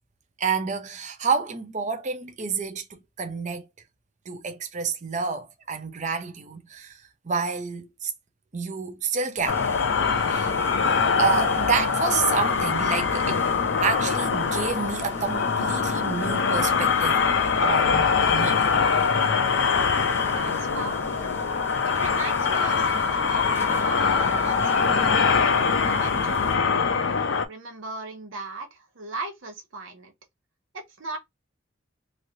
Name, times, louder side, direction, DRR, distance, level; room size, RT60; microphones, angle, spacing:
voice 1, 0.4-3.7 4.3-8.1 8.5-9.6 10.3-10.5 11.2-13.5 13.8-17.2 17.6-18.7, right 5 dB, 40° right, 0.6 m, -29 dB
sound 1, 9.4-26.6, left 1 dB, 10° left, 0.4 m, -40 dB
sound 2, 9.5-27.5, left 5 dB, 70° left, 0.5 m, -23 dB
voice 2, 20.2-21.4 21.8-25.4 25.8-26.8 27.5-30.1 30.7-31.2, right 3 dB, 85° right, 0.9 m, -38 dB
3.1 x 2.7 x 2.6 m
head